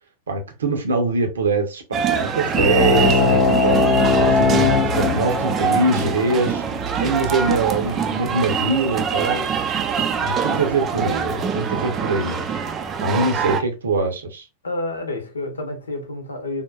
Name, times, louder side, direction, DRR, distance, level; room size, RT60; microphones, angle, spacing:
voice 1, 0.3-3.8 4.2-6.6 7.0-9.4 10.2-12.4 13.0-14.4, right 3 dB, 70° right, 0.7 m, -23 dB
sound 1, 1.9-13.6, right 7 dB, 25° right, 0.4 m, -24 dB
sound 2, 2.5-7.6, left 4 dB, 30° left, 0.4 m, -20 dB
voice 2, 14.6-16.6, left 2 dB, 75° left, 0.8 m, -29 dB
3.5 x 2.5 x 2.3 m
figure-of-eight pair, 90°, 0 cm